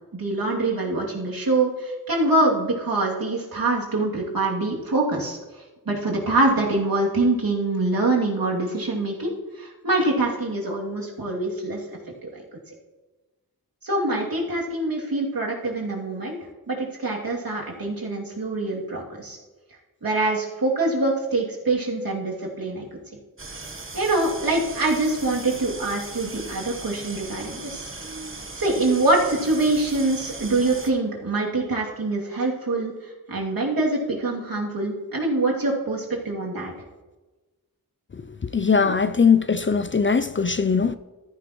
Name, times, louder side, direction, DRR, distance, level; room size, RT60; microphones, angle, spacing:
voice 1, 0.1-5.4 5.9-11.8 12.2-12.3 13.8-16.4 16.7-19.4 20.0-22.9 23.9-27.9 28.6-32.9 33.3-36.7, right 2 dB, 65° right, 2.9 m, -24 dB
sound 1, 23.4-30.9, right 3 dB, 35° right, 1.2 m, -38 dB
voice 2, 38.5-41.0, left 5 dB, 35° left, 0.5 m, -20 dB
14.0 x 10.0 x 3.1 m
wide cardioid pair, 65°, 37 cm